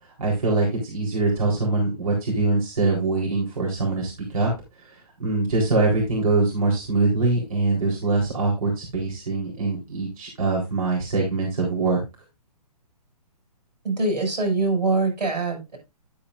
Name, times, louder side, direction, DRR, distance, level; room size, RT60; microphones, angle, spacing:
voice 1, 0.2-4.5 4.8-12.0, right 3 dB, 60° right, -2 dB, 4.0 m, -23 dB
voice 2, 13.8-15.8, right 3 dB, 90° right, 4 dB, 6.7 m, -23 dB
10.5 x 8.6 x 2.6 m, 0.24 s
hypercardioid pair, 160°, 21 cm